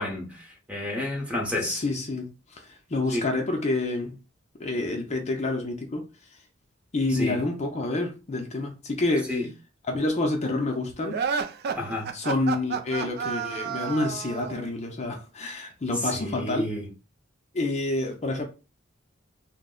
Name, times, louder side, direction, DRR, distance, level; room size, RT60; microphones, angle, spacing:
voice 1, 0.0-1.8 3.1-3.2 7.1-7.4 9.3-9.5 11.7-12.1 16.0-16.9, left 1 dB, 5° right, 0.8 m, -30 dB
voice 2, 1.6-4.2 4.6-6.1 6.9-9.3 9.9-11.2 12.1-16.7 17.5-18.5, left 2 dB, 35° left, 0.5 m, -28 dB
sound 1, 11.1-14.6, right 6 dB, 55° right, 0.3 m, -30 dB
3.1 x 2.0 x 3.6 m
head